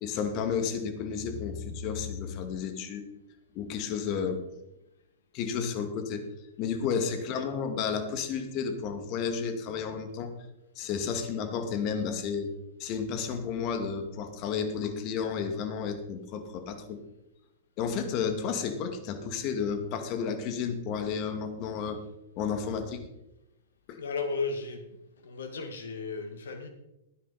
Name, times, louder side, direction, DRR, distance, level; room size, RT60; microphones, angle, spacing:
voice 1, 0.0-3.1 3.5-4.4 5.3-6.2 6.6-10.3 10.8-12.5 12.8-17.0 17.8-22.0 22.4-23.1 23.9-24.0, left 6 dB, 40° left, 7 dB, 2.2 m, -32 dB
voice 2, 23.9-24.8 25.2-26.7, left 4 dB, 70° left, 6 dB, 2.0 m, -34 dB
18.5 x 10.5 x 4.3 m, 0.94 s
hypercardioid pair, 110°, 0 cm